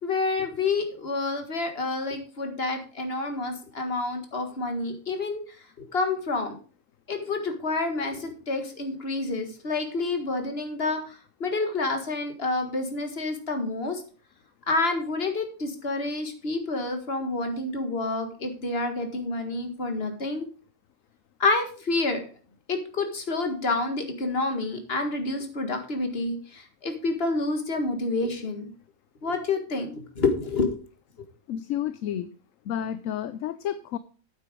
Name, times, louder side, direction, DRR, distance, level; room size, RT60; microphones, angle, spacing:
voice 1, 0.0-5.4 5.8-6.6 7.1-11.0 11.4-14.0 14.7-20.5 21.4-22.2 22.7-28.7 29.2-30.8, left 3 dB, 45° left, 5 dB, 2.0 m, -28 dB
voice 2, 31.5-32.3 32.7-34.0, left 10 dB, 70° left, 13 dB, 1.0 m, -31 dB
9.1 x 7.7 x 5.0 m, 0.39 s
omnidirectional pair, 1.5 m